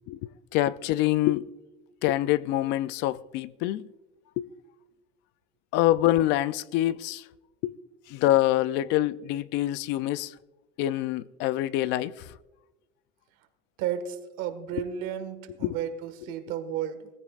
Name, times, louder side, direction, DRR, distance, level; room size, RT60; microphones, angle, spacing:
voice 1, 0.1-1.5 2.0-3.9 4.4-4.5 5.7-7.3 7.6-7.7 8.1-10.3 10.8-12.3 14.7-14.8 15.6-15.8, left 14 dB, 65° left, 0.4 m, -26 dB
voice 2, 13.8-17.1, right 9 dB, 90° right, 1.6 m, -33 dB
20.5 x 14.5 x 2.4 m
cardioid pair, 180°, 20 cm